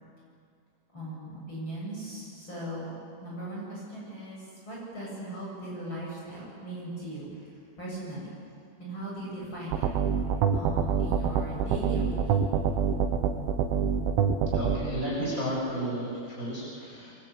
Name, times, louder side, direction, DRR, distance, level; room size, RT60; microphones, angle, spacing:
voice 1, 0.9-2.9 3.2-4.4 4.6-7.3 7.8-8.3 8.8-9.9 10.5-12.6, right 1 dB, 25° left, -5 dB, 8.3 m, -38 dB
sound 1, 9.7-14.8, right 7 dB, 80° right, 3.8 m, -25 dB
voice 2, 14.5-17.1, equal, 15° right, -5 dB, 7.1 m, -32 dB
27.0 x 24.0 x 8.5 m, 2.4 s
omnidirectional pair, 5.8 m